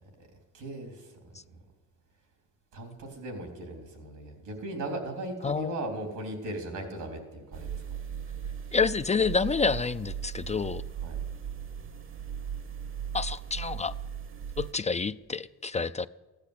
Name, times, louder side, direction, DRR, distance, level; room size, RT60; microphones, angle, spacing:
voice 1, 0.5-1.6 2.7-7.8 11.0-11.2, right 1 dB, 85° right, 3 dB, 3.6 m, -38 dB
voice 2, 5.4-5.7 8.7-10.8 13.1-13.9 14.6-16.1, left 5 dB, 25° left, 13 dB, 0.4 m, -28 dB
sound 1, 7.5-14.7, right 8 dB, 45° right, 1.0 m, -37 dB
15.5 x 10.5 x 8.3 m, 1.2 s
cardioid pair, 90°, 30 cm